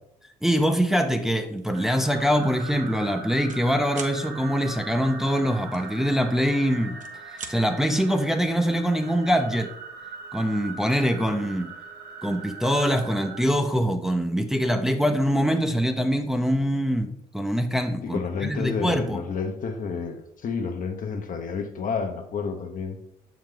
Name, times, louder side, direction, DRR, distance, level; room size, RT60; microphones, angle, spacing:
voice 1, 0.4-7.0 7.3-9.7 10.3-11.7 12.2-19.2, equal, 5° right, 0.7 m, -24 dB
sound 1, 1.6-1.8 2.3-2.5 2.7-3.6 3.9-4.2 5.7-6.5 6.9-7.6, right 5 dB, 50° right, 0.9 m, -40 dB
sound 2, 1.7-13.4, right 4 dB, 75° right, 1.0 m, -41 dB
voice 2, 18.0-23.0, left 5 dB, 55° left, 0.9 m, -30 dB
6.4 x 4.7 x 3.8 m
supercardioid pair, 70°, 17 cm